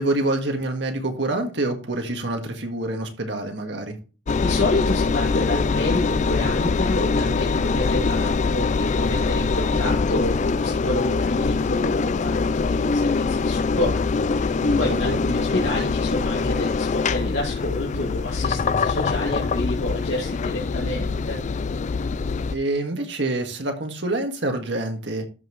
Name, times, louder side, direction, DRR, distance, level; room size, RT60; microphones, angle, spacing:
voice 1, 0.0-4.0 14.5-15.2 22.5-25.2, right 2 dB, 70° right, 1.8 m, -27 dB
Engine, 4.3-22.6, left 4 dB, 40° left, 0.4 m, -23 dB
voice 2, 4.4-21.4, left 1 dB, 85° left, 2.4 m, -28 dB
13.0 x 5.6 x 3.1 m
head